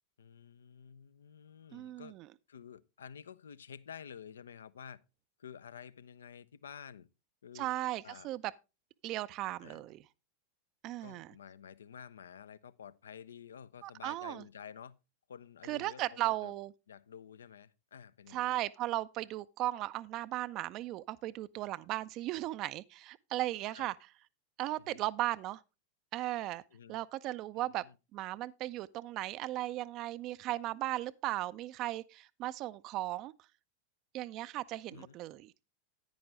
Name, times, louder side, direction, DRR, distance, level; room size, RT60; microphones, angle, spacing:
voice 1, 0.2-2.1 2.5-5.0 5.4-7.1 7.4-7.7 8.0-8.3 9.6-9.8 11.0-15.0 15.3-16.5 16.9-18.5 23.7-23.9 24.8-25.0 26.7-27.0 27.6-27.9 34.9-35.2, left 8 dB, 65° left, 0.5 m, -51 dB
voice 2, 1.7-2.3 7.5-8.5 9.0-10.0 10.8-11.3 13.8-14.4 15.6-16.7 18.3-24.0 24.6-25.6 26.1-26.6 26.9-27.8 28.1-33.3 34.1-35.5, right 16 dB, 40° right, 0.4 m, -36 dB
10.5 x 9.3 x 3.2 m
figure-of-eight pair, 90°, 0 cm